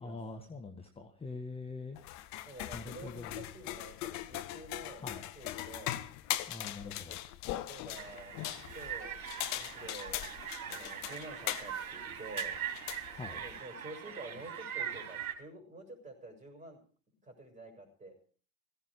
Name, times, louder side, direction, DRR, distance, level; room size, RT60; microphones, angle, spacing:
voice 1, 0.0-2.0 2.7-3.4 5.0-5.2 6.5-7.2 13.1-13.4, left 3 dB, 15° left, 5 dB, 1.6 m, -44 dB
sound 1, 2.0-13.6, left 14 dB, 40° left, 1.2 m, -40 dB
voice 2, 2.4-5.0 5.3-6.0 7.5-8.3 8.7-10.2 10.7-12.6 13.4-16.8 17.2-18.2, right 2 dB, 15° right, 4 dB, 6.2 m, -49 dB
sound 2, 7.9-15.3, right 9 dB, 70° right, 3.3 m, -41 dB
16.0 x 15.5 x 4.9 m, 0.43 s
figure-of-eight pair, 85°, 42 cm